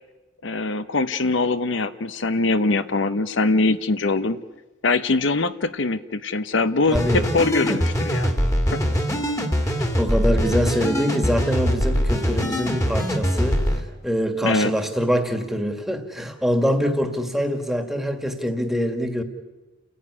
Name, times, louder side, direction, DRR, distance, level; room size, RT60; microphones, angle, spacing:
voice 1, 0.4-4.4 4.8-8.3 8.7-8.8 14.4-14.7, left 3 dB, 65° left, 13 dB, 0.8 m, -22 dB
sound 1, 6.9-13.8, equal, 15° left, 2.1 m, -23 dB
voice 2, 6.9-7.3 7.5-7.8 9.6-19.2, equal, ahead, 6 dB, 1.9 m, -24 dB
30.0 x 16.0 x 9.7 m, 1.2 s
head